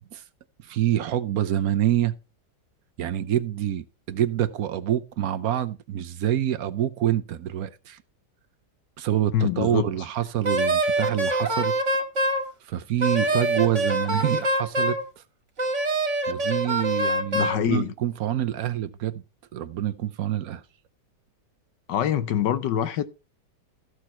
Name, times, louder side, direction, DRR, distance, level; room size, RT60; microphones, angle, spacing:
voice 1, 0.6-2.1 3.0-8.0 9.0-11.7 12.7-15.2 16.3-19.2 19.5-20.6, right 11 dB, 65° right, 1.0 m, -26 dB
voice 2, 9.3-9.9 17.3-17.9 21.9-23.0, left 9 dB, 80° left, 1.4 m, -25 dB
Wind instrument woodwind instrument, 10.4-12.4 13.0-15.0 15.6-17.6, right 1 dB, 45° right, 1.8 m, -24 dB
14.0 x 6.5 x 4.3 m
omnidirectional pair, 1.9 m